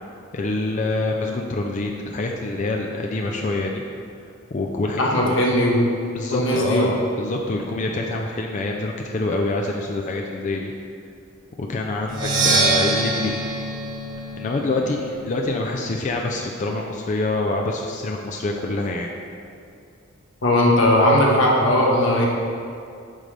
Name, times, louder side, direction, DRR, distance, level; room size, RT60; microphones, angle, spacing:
voice 1, 0.3-3.8 4.5-5.4 6.1-10.7 11.6-13.3 14.4-19.1, left 2 dB, 35° left, 1 dB, 0.4 m, -26 dB
voice 2, 5.0-5.9 6.3-6.9 20.4-22.3, left 1 dB, 70° left, -3 dB, 1.3 m, -18 dB
Percussion, 12.1-15.9, right 2 dB, 65° right, 1.4 m, -24 dB
9.1 x 5.2 x 3.3 m, 2.4 s
head